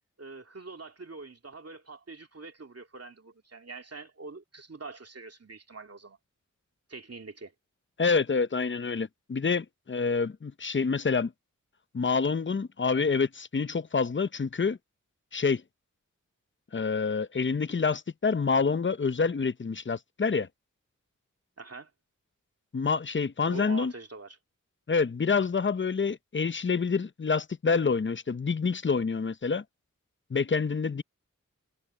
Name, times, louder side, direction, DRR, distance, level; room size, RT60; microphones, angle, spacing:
voice 1, 0.2-6.2 6.9-7.5 21.6-21.9 23.5-24.4, right 3 dB, 50° right, 2.5 m, -44 dB
voice 2, 8.0-11.3 11.9-14.8 15.3-15.6 16.7-20.5 22.7-23.9 24.9-29.6 30.3-31.0, left 5 dB, 35° left, 0.7 m, -27 dB
cardioid pair, 40°, 32 cm